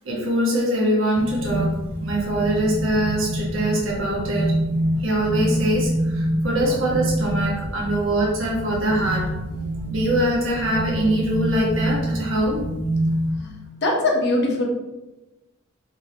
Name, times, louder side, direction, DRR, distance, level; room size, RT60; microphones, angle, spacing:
voice 1, 0.0-4.6 5.0-9.3 9.9-12.7, right 1 dB, 80° right, -4 dB, 1.1 m, -23 dB
sound 1, 1.2-13.3, right 1 dB, 10° left, 0.3 m, -26 dB
voice 2, 13.8-14.7, left 2 dB, 55° left, -1 dB, 0.8 m, -21 dB
3.7 x 3.2 x 2.8 m, 1.0 s
head